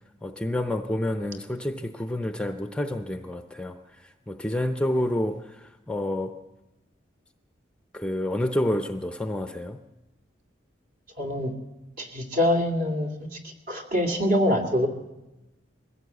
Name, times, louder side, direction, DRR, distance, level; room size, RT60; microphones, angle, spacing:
voice 1, 0.2-6.4 7.9-9.8, left 1 dB, 5° left, 0.6 m, -29 dB
voice 2, 11.2-11.5 12.0-13.1 13.7-14.9, left 1 dB, 50° right, 2.4 m, -24 dB
21.0 x 16.0 x 8.1 m
head